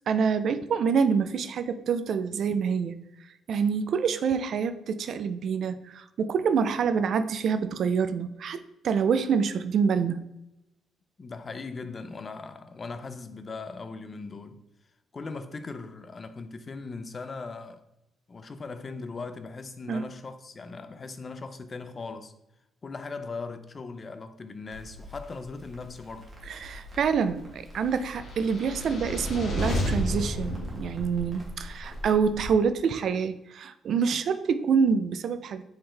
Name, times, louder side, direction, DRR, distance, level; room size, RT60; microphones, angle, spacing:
voice 1, 0.1-10.2 19.9-20.0 26.5-35.6, right 6 dB, 65° right, 0.3 m, -26 dB
voice 2, 11.2-14.6 15.1-17.8 18.3-22.3 22.8-26.3, left 4 dB, 35° left, 0.4 m, -39 dB
Crackle, 24.7-32.5, left 1 dB, 30° right, 1.3 m, -44 dB
sound 1, 28.2-31.6, equal, 65° left, 1.1 m, -31 dB
4.3 x 3.8 x 3.2 m
cardioid pair, 90°, 0 cm